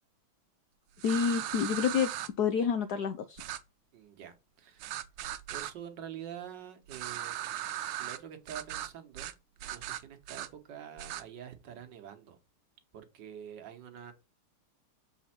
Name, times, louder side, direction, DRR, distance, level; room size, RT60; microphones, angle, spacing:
voice 1, 1.0-2.1 2.4-3.4, left 7 dB, 75° left, 0.9 m, -28 dB
sound 1, 1.0-2.3 3.4-3.6 4.8-5.7 6.9-8.2 8.5-8.9 9.2-9.3 9.6-10.5 11.0-11.2, right 12 dB, 80° right, 1.5 m, -38 dB
voice 2, 3.9-5.0 5.5-12.4 12.9-14.1, right 9 dB, 60° right, 1.7 m, -47 dB
6.9 x 4.3 x 4.2 m
omnidirectional pair, 2.3 m